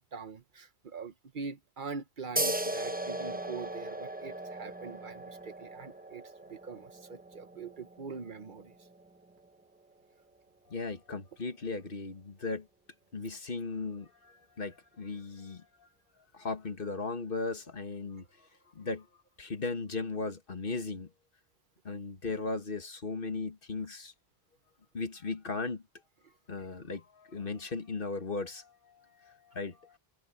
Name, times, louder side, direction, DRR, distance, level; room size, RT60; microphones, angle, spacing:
voice 1, 0.0-6.2 6.5-8.7, right 5 dB, 55° right, 1.0 m, -43 dB
sound 1, 2.4-9.5, right 1 dB, 10° right, 0.8 m, -38 dB
voice 2, 10.7-12.7 13.1-15.9 16.3-18.3 18.8-19.1 19.4-21.1 21.9-24.1 24.9-25.8 26.5-30.0, left 3 dB, 60° left, 1.8 m, -37 dB
omnidirectional pair, 1.1 m